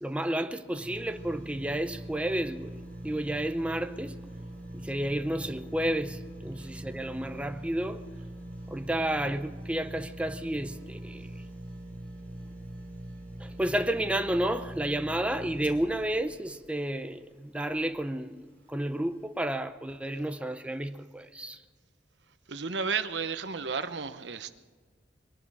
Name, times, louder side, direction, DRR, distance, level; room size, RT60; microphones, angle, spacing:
voice 1, 0.0-2.8 3.0-4.2 4.7-8.0 8.7-11.4 13.4-21.6, right 1 dB, 5° right, 0.6 m, -31 dB
sound 1, 0.7-17.9 18.4-18.5, right 1 dB, 10° left, 3.0 m, -43 dB
voice 2, 22.5-24.5, right 5 dB, 70° right, 0.9 m, -33 dB
23.5 x 11.5 x 4.8 m
head